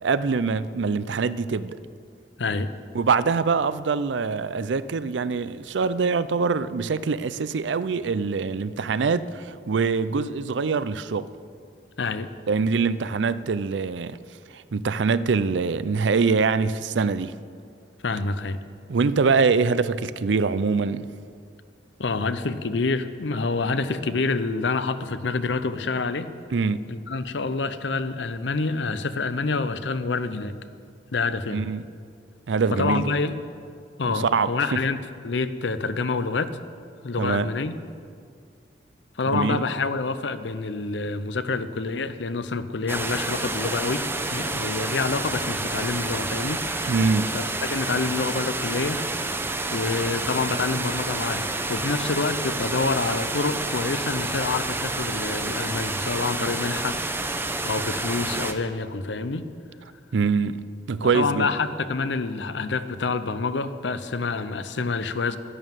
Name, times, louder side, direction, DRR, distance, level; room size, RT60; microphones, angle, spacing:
voice 1, 0.0-1.8 2.9-11.3 12.5-14.2 14.5-17.3 18.9-21.1 26.5-26.8 31.5-31.8 32.5-33.2 34.0-34.8 37.2-37.5 39.3-39.6 46.9-47.3 60.1-60.6 60.9-61.5, right 4 dB, 85° right, 0.5 m, -24 dB
voice 2, 2.4-2.7 12.0-12.3 18.0-18.6 22.0-26.3 26.9-30.6 31.1-31.6 32.7-33.4 34.0-35.0 35.2-36.6 37.0-37.7 39.2-46.6 47.3-47.4 47.7-49.3 49.7-57.0 57.6-59.5 61.0-65.4, left 4 dB, 80° left, 0.7 m, -27 dB
sound 1, 42.9-58.5, right 2 dB, 15° right, 0.7 m, -29 dB
11.5 x 11.0 x 7.4 m
head